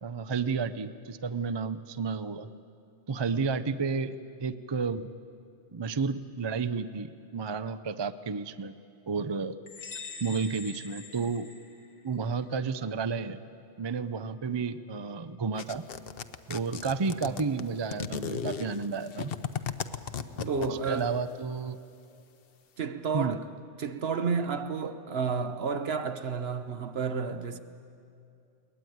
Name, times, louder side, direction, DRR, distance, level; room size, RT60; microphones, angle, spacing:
voice 1, 0.0-2.5 3.1-5.1 5.7-8.7 9.1-9.6 10.2-11.5 12.0-13.4 13.8-15.8 16.5-19.3 20.4-20.5 20.9-21.8 23.1-23.4, right 5 dB, 35° right, 0.4 m, -31 dB
sound 1, 9.7-12.2, left 4 dB, 80° left, 1.9 m, -44 dB
sound 2, 15.6-21.1, left 7 dB, 55° left, 0.9 m, -35 dB
voice 2, 20.5-21.1 22.8-23.5 23.8-27.6, right 5 dB, 60° right, 1.2 m, -31 dB
21.5 x 19.5 x 9.4 m
omnidirectional pair, 1.2 m